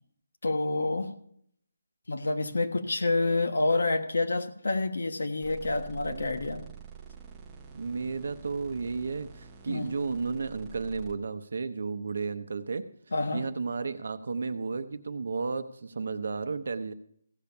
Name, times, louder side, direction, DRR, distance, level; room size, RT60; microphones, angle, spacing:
voice 1, 0.4-1.1 2.1-6.6 9.7-9.9 13.1-13.4, left 2 dB, 75° left, 7 dB, 1.4 m, -28 dB
sound 1, 5.4-11.1, right 7 dB, 10° right, 0.7 m, -47 dB
voice 2, 6.0-6.3 7.7-12.8 13.3-16.9, right 4 dB, 50° right, 10 dB, 0.7 m, -33 dB
15.5 x 6.8 x 5.9 m, 0.67 s
hypercardioid pair, 175°, 0 cm